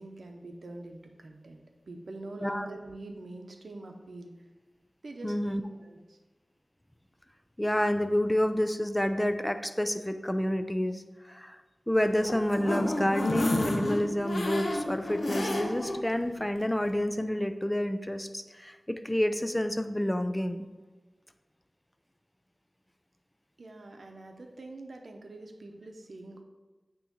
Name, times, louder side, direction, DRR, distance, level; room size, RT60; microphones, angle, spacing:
voice 1, 0.0-4.3 5.0-6.2 23.6-26.4, right 2 dB, 80° right, 3 dB, 0.7 m, -44 dB
voice 2, 5.2-5.6 7.6-11.6 11.9-20.7, left 1 dB, 10° left, 8 dB, 0.5 m, -29 dB
sound 1, 12.0-16.0 16.4-16.5 16.8-16.9, left 1 dB, 75° left, 0.8 m, -31 dB
8.9 x 3.0 x 3.7 m, 1.2 s
wide cardioid pair, 60°, 0 cm